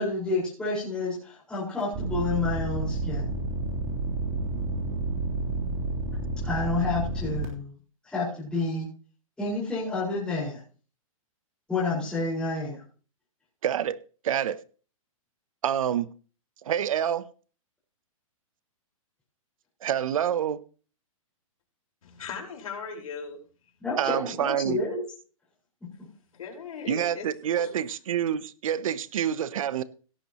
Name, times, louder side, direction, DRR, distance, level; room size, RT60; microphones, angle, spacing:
voice 1, 0.0-3.3 6.4-7.7 8.0-8.9 9.4-10.6 11.7-12.8 23.8-25.0, left 3 dB, 5° left, 5.1 m, -29 dB
sound 1, 1.9-7.4, right 3 dB, 35° right, 3.4 m, -30 dB
voice 2, 13.6-14.0 14.2-14.6 15.6-16.1 16.6-17.3 19.8-20.6 24.0-24.8 26.9-29.8, right 9 dB, 70° right, 0.8 m, -27 dB
voice 3, 22.0-23.4 26.3-27.3 27.5-27.7, left 6 dB, 75° left, 4.9 m, -38 dB
17.0 x 8.9 x 3.0 m
hypercardioid pair, 155°, 18 cm